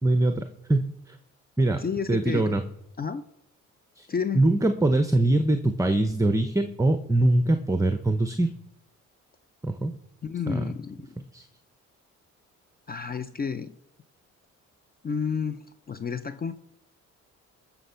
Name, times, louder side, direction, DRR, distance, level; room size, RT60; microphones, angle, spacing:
voice 1, 0.0-1.2 1.6-2.6 4.0-4.1 4.3-8.5 9.6-9.9 10.5-10.7 11.3-11.4, right 2 dB, 10° right, 9 dB, 0.9 m, -23 dB
voice 2, 1.8-2.6 3.0-3.2 4.1-4.4 10.2-11.1 12.9-13.7 15.0-16.5, left 6 dB, 30° left, 12 dB, 0.6 m, -31 dB
19.5 x 6.9 x 5.7 m, 0.84 s
cardioid pair, 90°, 30 cm